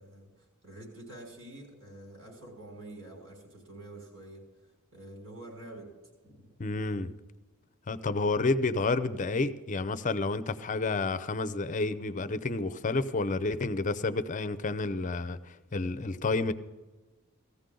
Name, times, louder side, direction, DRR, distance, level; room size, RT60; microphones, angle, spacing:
voice 1, 0.0-4.4 4.9-5.9 6.2-6.4, right 1 dB, 80° right, 5.8 m, -47 dB
voice 2, 6.6-7.1 7.9-15.4 15.7-16.5, left 3 dB, 35° left, 0.6 m, -30 dB
17.5 x 14.5 x 3.8 m
head